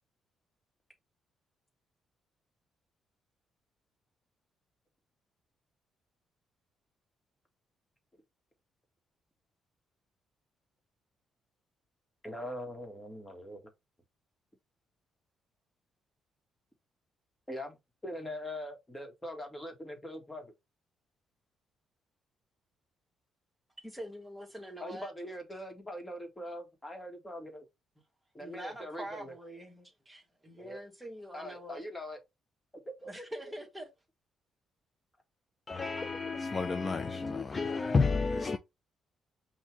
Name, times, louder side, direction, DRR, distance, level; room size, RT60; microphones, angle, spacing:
voice 1, 12.2-13.6 17.5-17.8 18.0-20.5 24.8-27.7 28.3-29.3 30.6-30.8 31.3-32.2 33.0-33.5, left 1 dB, 15° left, 1.7 m, -42 dB
voice 2, 23.8-25.1 28.4-31.8 33.1-33.9, right 1 dB, 10° right, 1.7 m, -44 dB
voice 3, 35.7-38.6, left 4 dB, 30° left, 0.4 m, -30 dB
5.6 x 2.7 x 3.3 m
cardioid pair, 90°, 0 cm